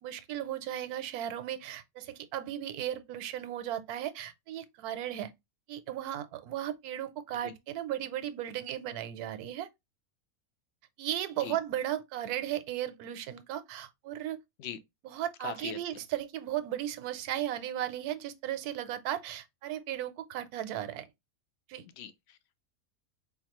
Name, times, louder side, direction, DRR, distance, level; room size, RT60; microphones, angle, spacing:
voice 1, 0.0-5.3 5.7-9.7 11.0-14.4 15.0-21.1 21.7-21.8, right 12 dB, 80° right, 1.1 m, -36 dB
voice 2, 15.4-15.8 22.0-22.5, left 10 dB, 70° left, 0.6 m, -41 dB
4.4 x 2.3 x 2.9 m
omnidirectional pair, 1.6 m